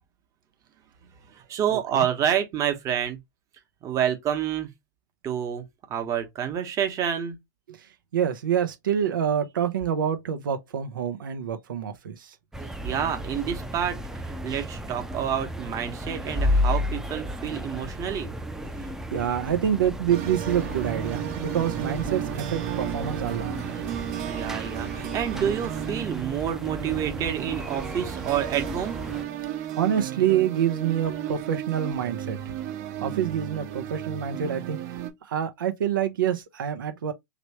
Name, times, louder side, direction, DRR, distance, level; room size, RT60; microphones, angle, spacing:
voice 1, 1.0-3.2 3.8-4.7 5.2-5.6 5.9-7.4 12.8-18.3 24.2-29.0, right 9 dB, 30° right, 1.1 m, -28 dB
voice 2, 1.7-2.1 7.7-12.4 18.8-23.6 29.7-32.6 33.0-34.8 35.2-37.1, right 9 dB, 85° right, 0.7 m, -27 dB
sound 1, 12.5-29.3, left 1 dB, 5° right, 0.6 m, -33 dB
sound 2, 20.1-35.1, right 11 dB, 50° right, 1.0 m, -34 dB
3.2 x 3.0 x 2.9 m
hypercardioid pair, 120°, 11 cm